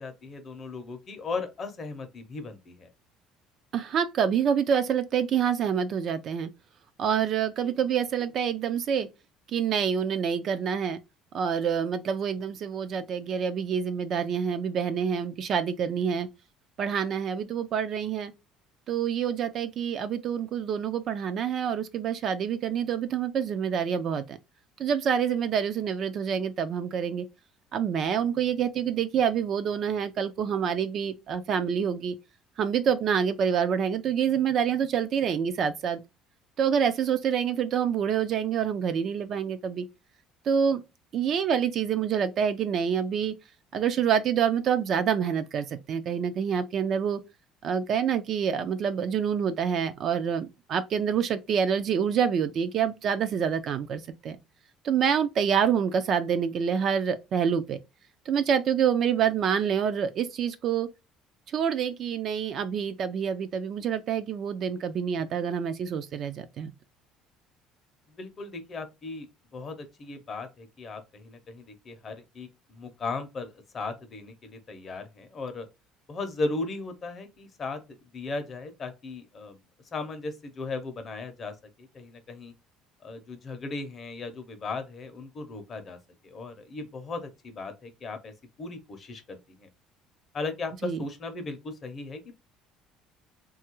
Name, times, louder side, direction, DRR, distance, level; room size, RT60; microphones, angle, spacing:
voice 1, 0.0-2.9 68.1-75.7 76.1-79.6 79.9-82.5 83.0-86.0 86.2-88.3 88.6-89.7 90.3-92.3, left 3 dB, 30° left, 0.6 m, -37 dB
voice 2, 3.7-6.5 7.0-9.1 9.5-11.0 11.3-16.3 16.8-18.3 18.9-24.4 24.8-27.3 27.7-32.2 32.6-36.0 36.6-39.8 40.5-40.8 41.1-43.3 43.7-47.2 47.6-54.4 54.8-57.8 58.3-60.9 61.5-66.7 90.8-91.0, right 7 dB, 45° right, 0.4 m, -27 dB
3.1 x 2.3 x 2.9 m
cardioid pair, 145°, 0 cm